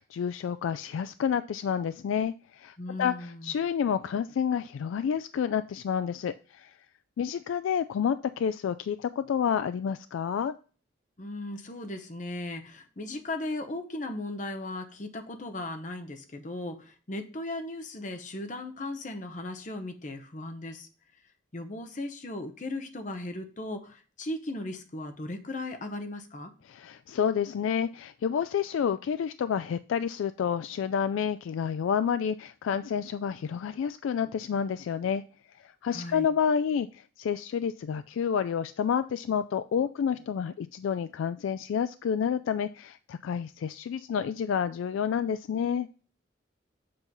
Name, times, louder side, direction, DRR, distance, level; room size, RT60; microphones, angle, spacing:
voice 1, 0.0-6.7 7.2-10.5 26.7-35.2 35.6-45.9, left 7 dB, 85° left, 12 dB, 0.3 m, -29 dB
voice 2, 2.8-3.5 11.2-20.9 21.5-26.5 35.9-36.3, left 2 dB, 40° left, 6 dB, 0.8 m, -37 dB
7.7 x 3.0 x 5.3 m, 0.37 s
head